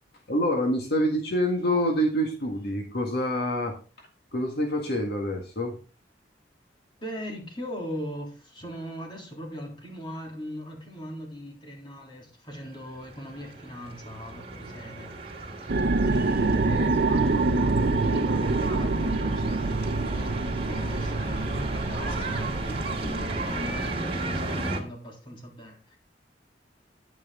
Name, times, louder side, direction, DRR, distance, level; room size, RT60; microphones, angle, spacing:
voice 1, 0.3-5.8, equal, 60° left, 2 dB, 1.8 m, -27 dB
voice 2, 7.0-15.1 15.6-15.7 16.0-26.0, equal, 30° left, 0 dB, 3.4 m, -39 dB
sound 1, 12.7-24.8, right 2 dB, 35° right, 2.8 m, -34 dB
sound 2, 15.7-23.9, right 3 dB, 60° right, 0.7 m, -26 dB
10.5 x 9.1 x 3.7 m, 0.36 s
head